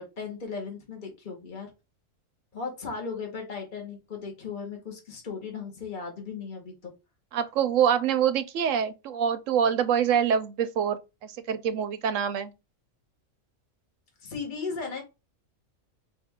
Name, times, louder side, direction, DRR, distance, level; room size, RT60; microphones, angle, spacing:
voice 1, 0.0-1.7 2.5-6.9 14.2-15.0, left 5 dB, 40° left, 1.6 m, -36 dB
voice 2, 7.3-12.5, right 8 dB, 75° right, 1.0 m, -25 dB
5.0 x 2.7 x 3.5 m
omnidirectional pair, 1.4 m